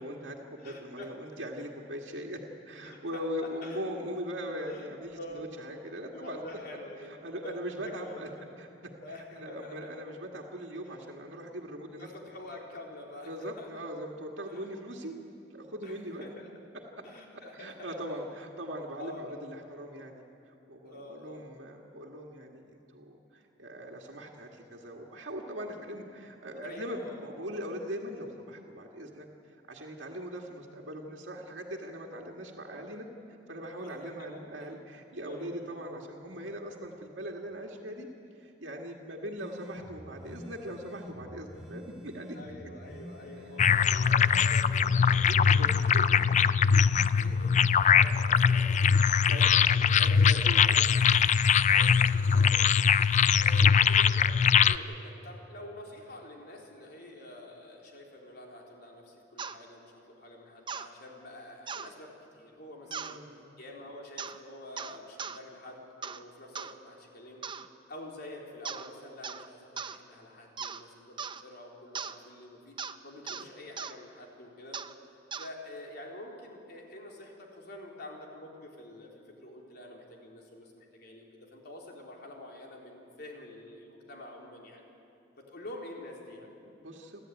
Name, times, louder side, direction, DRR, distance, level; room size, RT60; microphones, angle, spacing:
voice 1, 0.0-2.4 2.7-6.4 7.1-8.3 8.6-8.7 9.1-12.1 13.3-15.1 15.5-16.2 17.5-38.1 38.4-42.4 45.3-46.5 49.3-50.8 52.3-52.7 62.8-63.5 73.3-73.5 86.7-87.2, equal, 85° right, -1 dB, 2.0 m, -40 dB
voice 2, 0.6-1.1 2.8-3.9 4.7-4.9 5.1-5.5 6.1-7.1 7.4-8.4 9.0-9.9 12.0-13.7 14.4-14.7 15.8-16.5 17.0-17.7 19.0-19.3 20.8-21.4 25.7-26.0 26.6-27.2 33.8-34.7 35.2-35.8 42.3-46.0 46.6-46.8 47.2-49.0 50.6-50.9 51.7-52.6 53.3-63.2 63.6-67.5 67.9-72.7 73.0-74.8 75.3-84.8 85.4-86.5, left 1 dB, 60° left, -1 dB, 3.9 m, -47 dB
sound 1, 39.4-47.9, equal, ahead, 3.1 m, -47 dB
sound 2, 43.6-54.8, left 7 dB, 40° left, 0.4 m, -22 dB
sound 3, 59.4-59.6 60.7-60.9 61.7-61.9 62.9-63.2 64.2-64.4 64.8-65.4 66.0-66.2 66.6-66.7 67.4-67.7 68.7-68.9 69.2-69.5 69.8-70.0 70.6-70.8 71.2-71.4 72.0-72.2 72.8-73.0 73.3-73.5 73.8-74.0 74.7-74.9 75.3-75.5, right 6 dB, 25° right, 0.6 m, -38 dB
29.0 x 13.0 x 9.2 m, 2.7 s
head